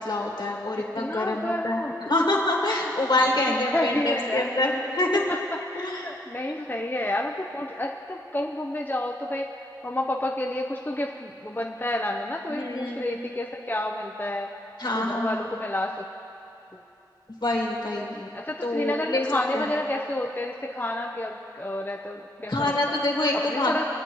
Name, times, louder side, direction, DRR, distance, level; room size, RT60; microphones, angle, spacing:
voice 1, 0.0-1.8 2.1-5.2 5.7-6.1 6.6-6.7 12.5-13.1 14.8-15.4 17.4-18.2 18.6-19.2 19.5-19.7 22.5-23.7, left 1 dB, 70° left, -2 dB, 1.9 m, -26 dB
voice 2, 0.8-2.0 3.7-4.5 5.3-5.4 5.7-9.5 9.8-14.5 14.9-16.1 16.7-16.8 18.1-23.0 23.3-23.9, left 1 dB, 25° left, 0 dB, 0.6 m, -30 dB
23.0 x 8.7 x 3.1 m, 2.8 s
wide cardioid pair, 45°, 8 cm